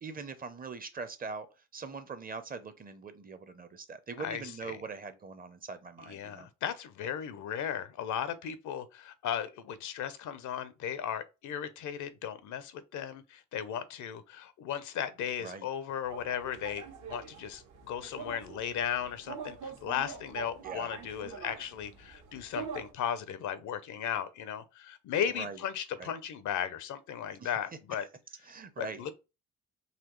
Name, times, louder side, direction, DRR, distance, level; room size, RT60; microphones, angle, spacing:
voice 1, 0.0-1.5 1.7-6.5 15.4-15.7 20.6-20.9 25.3-25.6 26.0-26.1 27.4-27.5 28.4-29.0, right 4 dB, 30° right, 0.6 m, -42 dB
voice 2, 4.2-4.7 6.1-28.0 28.8-29.1, left 9 dB, 75° left, 0.7 m, -36 dB
sound 1, 16.0-22.9, right 6 dB, 75° right, 1.2 m, -45 dB
4.1 x 2.7 x 3.0 m
cardioid pair, 90°, 30 cm